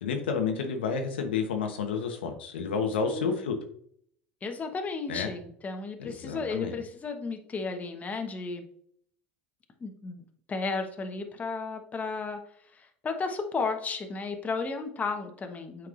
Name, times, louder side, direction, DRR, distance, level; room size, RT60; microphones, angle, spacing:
voice 1, 0.0-3.6 5.1-5.3 6.0-6.7, left 5 dB, 85° left, 4 dB, 1.0 m, -30 dB
voice 2, 4.4-8.6 9.8-12.4 12.7-15.9, left 4 dB, 25° left, 4 dB, 1.1 m, -34 dB
7.9 x 4.7 x 2.5 m, 0.65 s
hypercardioid pair, 85°, 6 cm